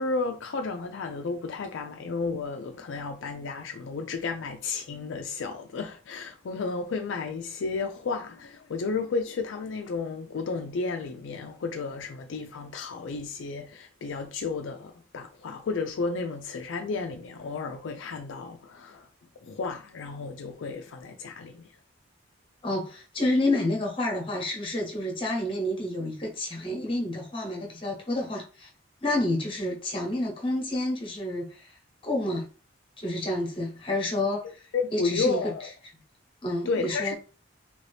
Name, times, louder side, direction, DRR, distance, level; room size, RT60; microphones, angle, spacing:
voice 1, 0.0-19.1 19.4-21.7 34.7-35.7 36.7-37.1, left 4 dB, 65° left, 0.4 m, -32 dB
voice 2, 22.6-28.7 29.0-31.8 32.0-32.5 33.0-34.4 34.9-35.4 36.4-37.1, left 1 dB, 25° left, 1.0 m, -29 dB
3.0 x 2.7 x 3.3 m
head